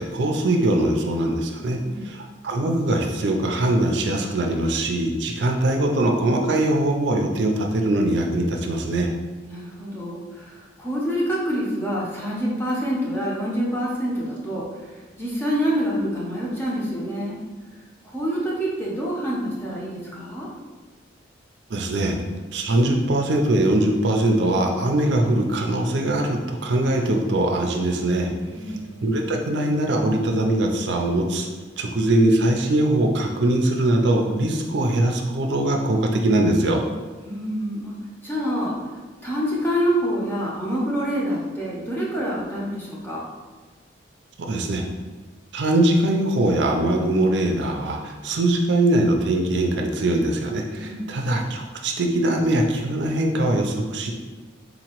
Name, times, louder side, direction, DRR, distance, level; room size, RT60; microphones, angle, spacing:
voice 1, 0.0-1.8 2.0-9.1 21.7-22.1 22.5-28.3 29.0-31.5 31.8-36.8 44.4-44.8 45.5-54.1, right 1 dB, 70° right, 2 dB, 0.4 m, -22 dB
voice 2, 9.5-14.7 15.2-17.4 18.0-20.5 28.5-28.8 37.2-37.9 38.2-38.7 39.2-43.2 50.8-51.1, equal, 10° left, -6 dB, 0.7 m, -26 dB
sound 1, 22.0-29.7, right 1 dB, 80° left, 1.0 m, -45 dB
4.0 x 2.9 x 2.9 m, 1.3 s
head